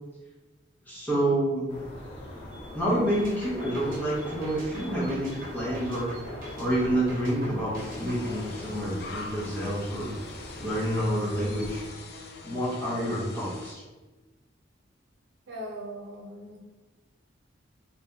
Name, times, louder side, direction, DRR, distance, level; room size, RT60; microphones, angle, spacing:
voice 1, 0.9-1.8 2.7-6.1 6.6-10.1 10.6-11.8 12.4-13.8, right 1 dB, 10° left, -9 dB, 1.3 m, -28 dB
sound 1, 1.7-11.9, left 1 dB, 30° left, 1.3 m, -43 dB
sound 2, 3.1-9.3, equal, 50° right, 1.2 m, -43 dB
sound 3, 7.8-13.7, left 3 dB, 60° left, 0.4 m, -44 dB
voice 2, 15.5-16.6, equal, 65° right, -1 dB, 0.7 m, -39 dB
3.0 x 2.7 x 3.6 m, 1.2 s
head